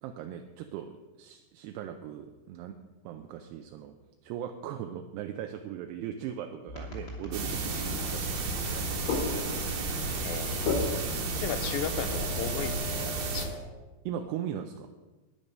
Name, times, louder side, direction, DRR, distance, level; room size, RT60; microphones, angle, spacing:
voice 1, 0.0-2.8 3.0-3.9 4.2-9.1 14.1-14.9, right 9 dB, 80° right, 5 dB, 2.5 m, -39 dB
sound 1, 6.7-13.6, equal, 25° left, 2.7 m, -45 dB
sound 2, 7.3-13.5, right 3 dB, 50° right, 2.2 m, -33 dB
sound 3, 7.7-12.8, left 3 dB, 65° left, 3.5 m, -36 dB
voice 2, 10.2-10.6 11.4-13.5, left 9 dB, 85° left, 10 dB, 2.0 m, -35 dB
12.5 x 10.5 x 5.4 m, 1.2 s
omnidirectional pair, 5.2 m